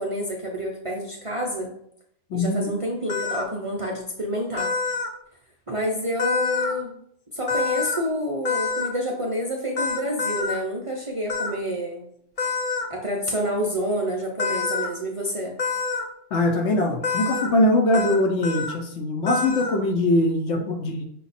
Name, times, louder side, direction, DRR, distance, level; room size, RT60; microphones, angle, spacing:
voice 1, 0.0-1.7 2.3-4.7 5.7-6.9 7.3-12.1 12.9-15.5 20.6-20.7, equal, 45° right, -1 dB, 0.4 m, -28 dB
voice 2, 2.3-2.7 16.3-21.1, left 1 dB, 70° left, 3 dB, 0.9 m, -22 dB
sound 1, 3.1-3.4 4.6-5.1 6.2-6.7 7.5-8.0 8.5-8.9 9.8-10.6 11.3-11.5 12.4-12.9 14.4-14.9 15.6-16.0 17.0-17.5 17.9-18.2 18.4-18.7 19.3-19.8, left 4 dB, 45° left, 0.5 m, -26 dB
5.7 x 2.2 x 4.0 m, 0.71 s
omnidirectional pair, 1.3 m